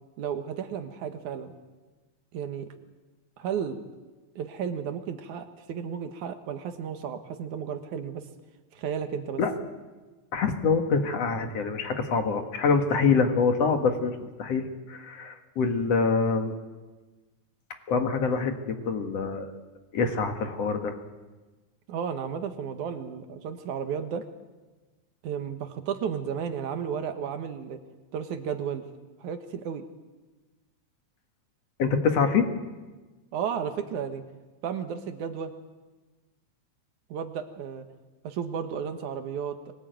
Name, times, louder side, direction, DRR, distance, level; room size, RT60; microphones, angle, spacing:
voice 1, 0.2-1.5 2.3-2.7 3.4-3.8 4.4-8.2 8.7-9.4 21.9-24.3 25.2-27.8 28.1-28.8 29.2-29.8 33.3-34.2 34.6-35.5 37.1-37.8 38.2-39.7, right 7 dB, 85° right, 8 dB, 2.9 m, -33 dB
voice 2, 10.3-16.5 17.9-19.5 19.9-21.0 31.8-32.5, left 5 dB, 60° left, 6 dB, 2.8 m, -25 dB
24.0 x 18.5 x 9.3 m, 1.2 s
omnidirectional pair, 3.4 m